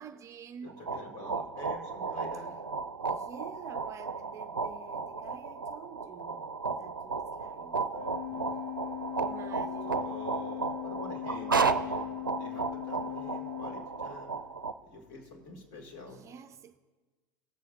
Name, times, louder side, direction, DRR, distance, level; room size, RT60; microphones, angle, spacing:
voice 1, 0.0-0.8 3.1-7.8 9.2-10.1 16.1-16.8, right 8 dB, 30° right, 0.4 m, -48 dB
voice 2, 0.6-2.5 7.9-8.5 9.9-14.4 14.8-16.3, left 2 dB, 45° left, 2.4 m, -47 dB
sound 1, 0.7-14.7, right 5 dB, 85° right, 0.4 m, -34 dB
Organ, 7.9-14.5, left 17 dB, 90° left, 0.6 m, -40 dB
18.5 x 7.6 x 2.7 m
figure-of-eight pair, 80°, 11 cm